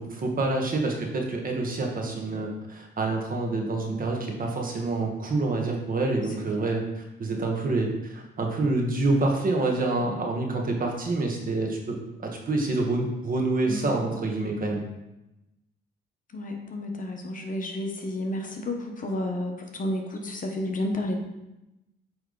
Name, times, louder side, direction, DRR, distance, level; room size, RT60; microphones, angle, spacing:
voice 1, 0.0-12.0 12.5-14.8, right 2 dB, 45° right, 1 dB, 1.3 m, -27 dB
voice 2, 13.7-14.0 16.3-21.2, left 1 dB, 40° left, 3 dB, 1.1 m, -31 dB
8.3 x 3.4 x 3.9 m, 0.95 s
cardioid pair, 90°, 20 cm